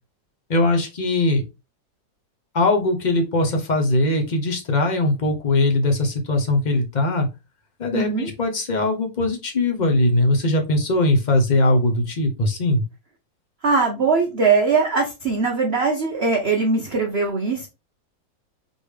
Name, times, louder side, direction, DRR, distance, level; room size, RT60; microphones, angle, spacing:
voice 1, 0.5-1.4 2.5-7.3 7.8-12.8, left 2 dB, 50° left, 3 dB, 0.5 m, -20 dB
voice 2, 7.9-8.3 13.6-17.7, right 4 dB, 50° right, 1 dB, 0.8 m, -21 dB
4.2 x 3.4 x 3.2 m, 0.26 s
omnidirectional pair, 2.0 m